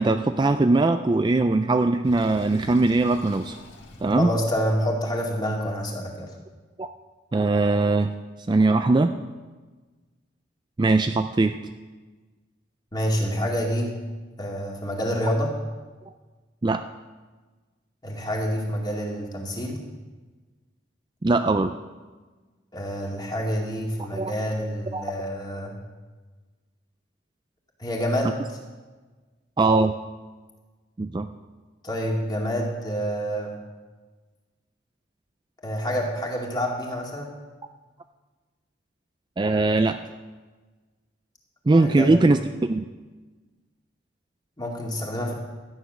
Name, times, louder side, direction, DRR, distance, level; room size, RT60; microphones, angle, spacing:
voice 1, 0.0-3.6 4.0-4.3 6.8-6.9 7.3-8.1 8.5-9.1 10.8-11.6 16.6-16.8 21.2-21.7 24.1-24.3 24.9-25.0 29.6-30.0 31.0-31.3 39.4-40.0 41.7-42.9, right 2 dB, 25° right, 8 dB, 0.3 m, -21 dB
Sink (filling or washing), 2.0-4.8, left 1 dB, 75° left, 1.6 m, -45 dB
voice 2, 4.2-6.3 12.9-13.9 14.4-15.5 18.0-19.8 22.7-25.8 27.8-28.4 31.8-33.5 35.6-37.3 41.7-42.2 44.6-45.3, equal, 20° left, -1 dB, 2.2 m, -27 dB
13.0 x 9.3 x 6.2 m, 1.3 s
head